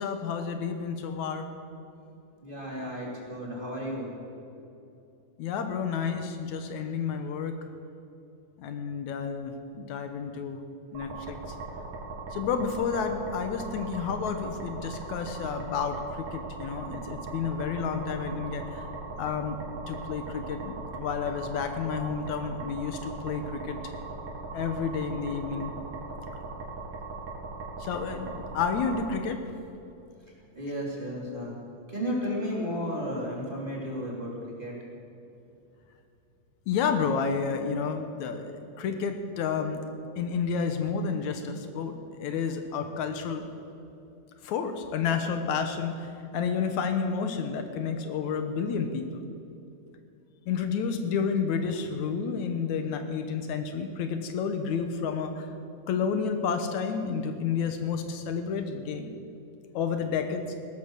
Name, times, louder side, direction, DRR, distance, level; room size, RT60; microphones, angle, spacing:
voice 1, 0.0-1.5 5.4-7.6 8.6-10.6 10.9-11.4 12.3-18.9 19.2-19.6 19.9-23.8 24.5-25.7 27.8-29.4 36.7-39.8 40.2-43.4 44.4-49.3 50.5-55.5 55.9-59.1 59.7-60.5, left 6 dB, 80° left, 7 dB, 2.4 m, -30 dB
voice 2, 2.4-4.1 4.4-4.6 30.5-31.5 31.9-34.3 34.6-34.7, equal, 15° right, -3 dB, 3.0 m, -33 dB
sound 1, 11.0-29.1, right 3 dB, 85° right, 3.3 m, -39 dB
17.0 x 13.5 x 6.3 m, 2.7 s
omnidirectional pair, 3.3 m